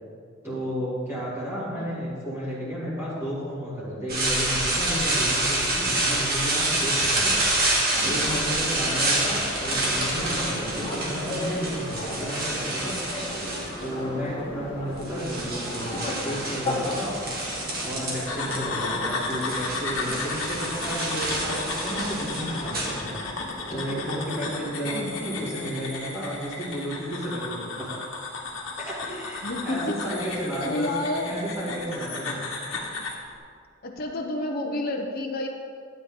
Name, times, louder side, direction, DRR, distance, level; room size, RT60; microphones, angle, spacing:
voice 1, 0.4-7.3 8.0-13.0 13.8-17.1 17.8-23.1 23.7-27.9 28.8-30.9 31.2-32.4, equal, 10° right, -10 dB, 2.7 m, -32 dB
voice 2, 1.7-2.0 24.8-25.1 29.4-29.9 30.6-31.3 33.8-35.5, left 1 dB, 45° left, 1 dB, 0.9 m, -30 dB
sound 1, 4.1-14.0 14.8-18.6 18.9-23.5, right 2 dB, 45° right, 2.0 m, -27 dB
sound 2, 7.9-25.7, left 1 dB, 25° left, 2.4 m, -36 dB
sound 3, 18.3-33.2, left 3 dB, 65° left, 1.5 m, -34 dB
12.0 x 8.6 x 3.8 m, 2.2 s
head